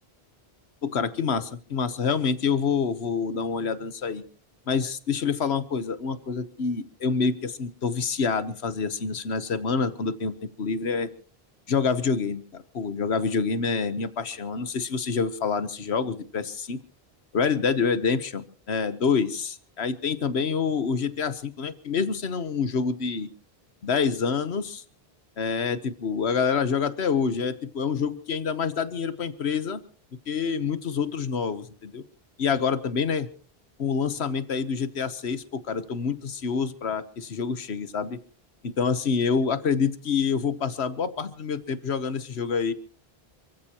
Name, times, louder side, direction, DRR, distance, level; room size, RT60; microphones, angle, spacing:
voice 1, 0.8-4.2 4.7-11.1 11.7-16.8 17.3-23.3 23.8-24.8 25.4-29.8 30.3-32.0 32.4-33.3 33.8-38.2 38.6-42.7, left 5 dB, 90° left, 12 dB, 1.4 m, -27 dB
28.5 x 15.5 x 3.0 m, 0.41 s
omnidirectional pair, 1.1 m